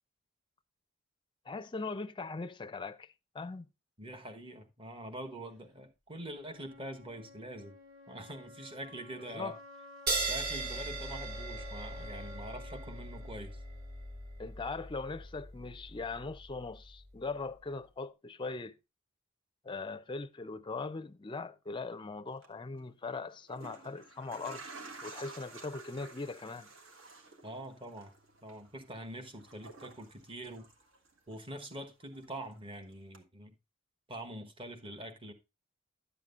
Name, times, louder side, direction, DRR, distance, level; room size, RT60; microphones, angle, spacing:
voice 1, 1.5-3.7 9.3-9.6 14.4-18.7 19.6-24.6 25.0-26.7, left 3 dB, 25° left, 0.5 m, -40 dB
voice 2, 4.0-7.8 8.1-9.6 10.3-13.6 27.4-28.1 28.4-30.7 31.3-33.5 34.1-35.3, right 1 dB, 25° right, 1.2 m, -44 dB
Wind instrument woodwind instrument, 6.3-14.3, left 2 dB, 85° right, 2.2 m, -53 dB
sound 1, 10.1-17.0, right 2 dB, 50° right, 2.6 m, -39 dB
sound 2, 22.3-22.5 23.3-31.3 31.6-32.7 33.1-33.2, right 3 dB, 65° right, 1.5 m, -52 dB
11.5 x 7.5 x 2.5 m
head